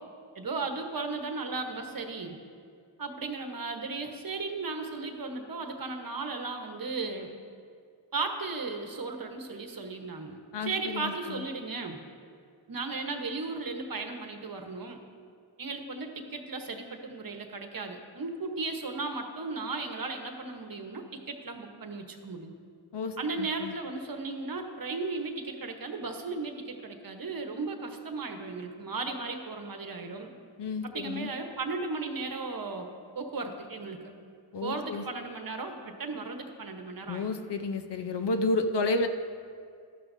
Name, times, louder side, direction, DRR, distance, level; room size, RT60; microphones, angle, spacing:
voice 1, 0.3-2.4 3.0-7.3 8.1-12.0 12.7-15.0 15.6-22.5 23.2-30.3 30.8-32.9 33.1-34.1 34.6-37.3, right 3 dB, 45° right, 4 dB, 1.1 m, -36 dB
voice 2, 10.5-11.4 22.9-23.7 30.6-31.3 34.5-35.0 37.1-39.1, left 3 dB, 60° left, 7 dB, 0.8 m, -31 dB
14.5 x 12.0 x 2.7 m, 2.3 s
wide cardioid pair, 95°, 46 cm